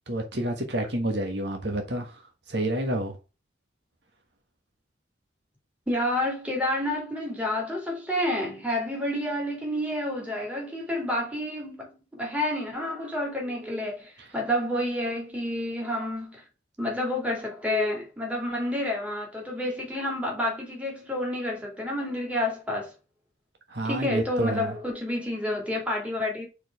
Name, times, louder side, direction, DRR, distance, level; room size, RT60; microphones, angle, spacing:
voice 1, 0.1-2.2 2.5-3.1 23.7-24.7, right 1 dB, 60° right, 1.4 m, -28 dB
voice 2, 5.9-16.4 16.8-22.9 23.8-26.5, left 1 dB, 5° right, 2.5 m, -29 dB
5.0 x 4.5 x 4.7 m
head